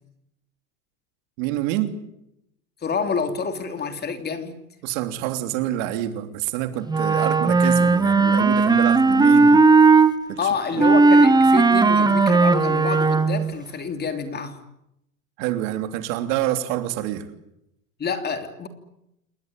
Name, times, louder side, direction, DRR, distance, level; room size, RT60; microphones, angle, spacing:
voice 1, 1.4-2.0 4.8-9.7 10.3-10.4 15.4-17.3, right 13 dB, 60° right, 8 dB, 3.4 m, -27 dB
voice 2, 2.8-4.6 10.4-14.6 18.0-18.7, left 5 dB, 20° left, 7 dB, 3.2 m, -28 dB
Wind instrument woodwind instrument, 6.9-10.1 10.8-13.5, right 4 dB, 10° right, 1.3 m, -16 dB
29.0 x 20.5 x 9.2 m, 0.82 s
supercardioid pair, 130°, 45 cm